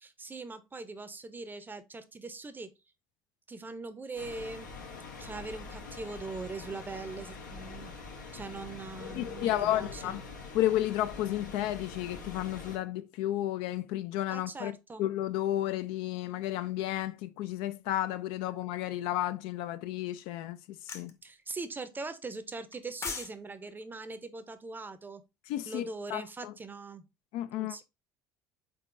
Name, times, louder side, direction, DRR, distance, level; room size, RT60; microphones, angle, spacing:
voice 1, 0.0-2.7 3.5-4.7 5.2-7.9 8.3-10.2 14.3-15.0 21.2-25.2 25.7-27.0 27.6-27.8, right 3 dB, 20° right, 0.6 m, -41 dB
sound 1, 4.1-12.8, left 4 dB, 90° left, 0.9 m, -44 dB
voice 2, 9.1-10.2 10.5-20.6 20.9-21.1 25.5-26.5 27.3-27.8, left 13 dB, 65° left, 0.4 m, -32 dB
sound 2, 20.9-21.1 22.7-23.3 23.6-23.8, left 4 dB, 30° left, 0.7 m, -37 dB
3.9 x 3.8 x 2.5 m
hypercardioid pair, 65°, 10 cm